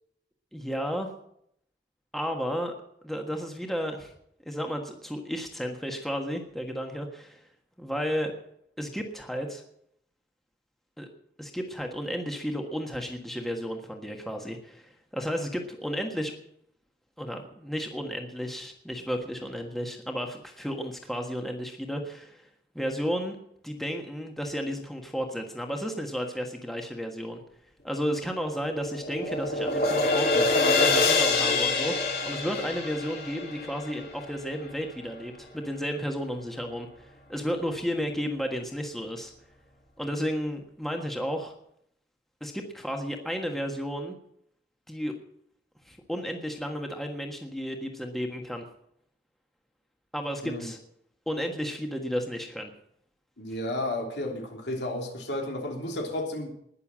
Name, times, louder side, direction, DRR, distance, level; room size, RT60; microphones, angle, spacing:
voice 1, 0.5-1.1 2.1-2.7 3.0-4.1 4.4-7.4 7.8-8.3 8.8-9.6 11.0-11.1 11.4-16.3 17.2-22.4 22.7-23.4 23.6-27.4 27.8-39.3 40.0-41.5 42.4-44.2 44.9-45.1 45.8-48.6 50.1-50.8 51.3-52.7, equal, ahead, 3 dB, 1.5 m, -33 dB
sound 1, 28.3-34.6, left 3 dB, 55° left, 3.2 m, -26 dB
voice 2, 53.4-56.5, left 1 dB, 85° left, 1 dB, 3.3 m, -32 dB
20.5 x 6.9 x 7.4 m, 0.73 s
head